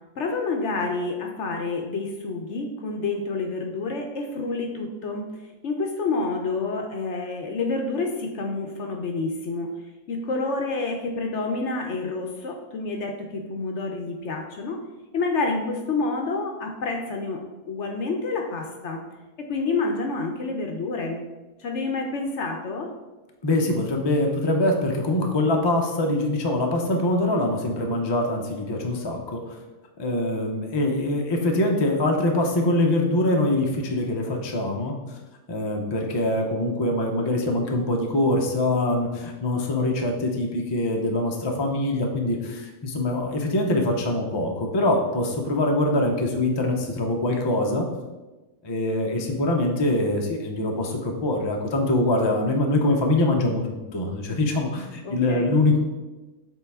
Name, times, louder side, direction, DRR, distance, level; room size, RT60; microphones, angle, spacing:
voice 1, 0.2-9.7 10.1-14.8 15.1-19.0 19.5-21.2 21.6-22.9 55.0-55.5, left 3 dB, 60° left, 3 dB, 0.8 m, -28 dB
voice 2, 23.4-29.6 30.0-35.0 35.5-47.9 48.6-55.8, left 1 dB, 40° left, 1 dB, 0.3 m, -24 dB
7.2 x 3.8 x 3.5 m, 1.1 s
omnidirectional pair, 1.7 m